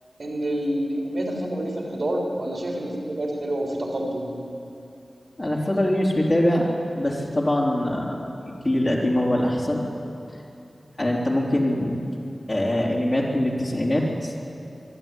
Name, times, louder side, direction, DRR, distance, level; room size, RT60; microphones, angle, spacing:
voice 1, 0.2-4.3, right 1 dB, 65° right, -1 dB, 3.5 m, -28 dB
voice 2, 5.4-6.7 7.0-8.2 8.5-9.9 10.3-10.4 11.0-12.1 12.5-14.3, left 1 dB, 40° left, -4 dB, 3.5 m, -23 dB
24.0 x 12.0 x 9.2 m, 2.6 s
wide cardioid pair, 55°, 0 cm